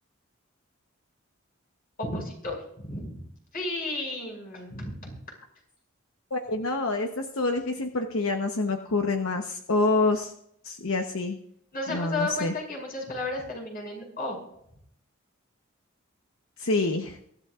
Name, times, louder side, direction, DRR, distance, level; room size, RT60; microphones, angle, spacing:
voice 1, 2.0-3.2 3.5-5.1 11.7-14.4, left 2 dB, 45° left, -1 dB, 5.9 m, -33 dB
voice 2, 6.3-10.3 10.6-11.4 11.9-12.5 16.6-17.2, left 3 dB, 75° left, 4 dB, 1.0 m, -27 dB
23.5 x 12.0 x 2.5 m, 0.71 s
head